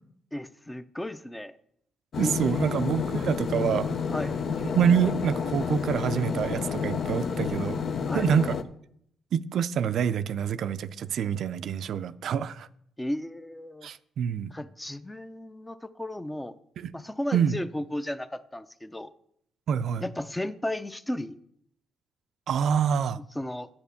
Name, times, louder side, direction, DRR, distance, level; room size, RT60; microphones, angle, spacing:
voice 1, 0.3-1.5 2.2-2.8 4.1-4.3 8.0-8.2 13.0-13.9 14.5-16.5 16.9-19.1 20.0-21.4 23.3-23.7, left 1 dB, 10° left, 12 dB, 0.6 m, -34 dB
sound 1, 2.1-8.6, left 6 dB, 55° left, 0.7 m, -30 dB
voice 2, 2.2-3.9 4.7-7.8 8.1-8.5 9.3-12.7 13.8-14.5 16.8-16.9 17.3-17.6 19.7-20.0 22.5-23.2, right 7 dB, 65° right, 12 dB, 0.4 m, -26 dB
8.9 x 7.2 x 7.0 m, 0.70 s
cardioid pair, 90°, 0 cm